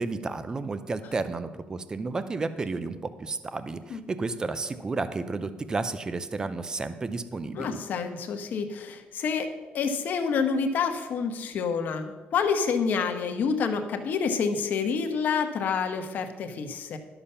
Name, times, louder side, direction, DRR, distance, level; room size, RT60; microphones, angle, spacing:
voice 1, 0.0-7.8, right 3 dB, 20° right, 12 dB, 0.5 m, -32 dB
voice 2, 7.6-9.5 9.7-17.0, left 5 dB, 55° left, 6 dB, 1.1 m, -28 dB
11.5 x 7.0 x 5.6 m, 1.3 s
cardioid pair, 165°, 4 cm